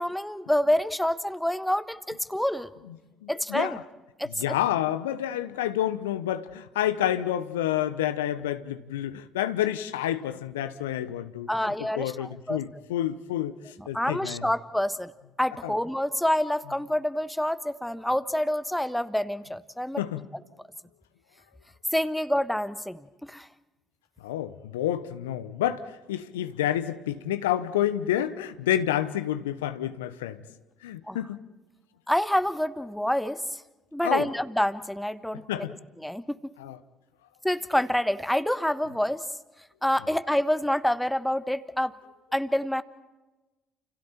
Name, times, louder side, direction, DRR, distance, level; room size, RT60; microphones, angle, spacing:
voice 1, 0.0-2.7 3.3-3.8 4.2-4.3 11.5-12.6 13.9-15.1 15.4-20.0 21.9-23.5 31.1-31.2 32.1-33.6 33.9-35.7 36.0-36.5 37.4-39.2 39.8-42.0 42.3-42.8, left 1 dB, 5° left, 1.3 m, -27 dB
voice 2, 3.2-3.8 4.4-14.5 15.6-15.7 20.0-20.2 24.2-30.4 30.8-31.4 34.0-34.3 35.5-35.8 36.6-36.8, left 12 dB, 80° left, 0.9 m, -29 dB
30.0 x 29.0 x 4.4 m
figure-of-eight pair, 50°, 0 cm